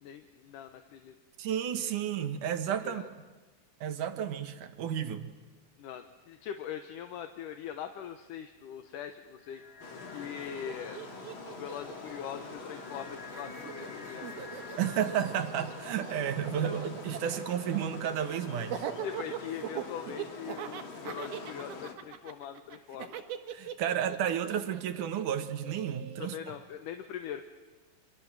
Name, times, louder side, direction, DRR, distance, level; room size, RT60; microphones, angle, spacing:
voice 1, 0.0-1.1 2.6-3.1 5.8-9.6 10.1-11.0 11.5-14.3 19.0-23.2 26.2-27.5, left 9 dB, 70° left, 8 dB, 2.4 m, -42 dB
voice 2, 1.4-3.0 3.8-5.3 14.8-18.8 23.5-26.4, right 9 dB, 65° right, 9 dB, 2.7 m, -32 dB
sound 1, 9.4-17.0, left 3 dB, 25° left, 2.3 m, -50 dB
sound 2, 9.8-21.9, left 4 dB, 40° left, 2.6 m, -45 dB
Laughter, 10.4-10.5 10.6-13.0 13.3-26.3, right 10 dB, 85° right, 3.4 m, -41 dB
29.5 x 25.0 x 7.5 m, 1.3 s
omnidirectional pair, 4.2 m